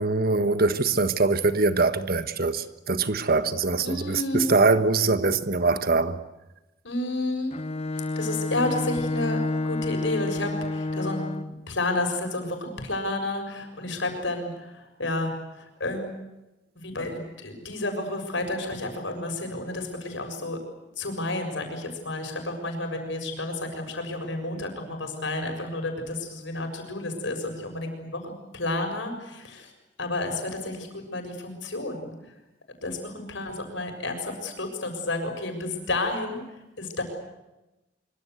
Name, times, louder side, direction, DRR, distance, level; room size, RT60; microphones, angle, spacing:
voice 1, 0.0-6.2, right 3 dB, 55° right, 1.5 m, -23 dB
voice 2, 3.8-4.5 6.8-7.5 8.2-11.3 11.7-16.1 16.8-20.6 21.0-29.7 30.0-32.1 32.8-36.4 36.8-37.0, left 2 dB, 70° left, 6.9 m, -31 dB
Bowed string instrument, 7.5-11.7, left 2 dB, 35° left, 1.1 m, -29 dB
25.0 x 24.5 x 8.2 m
head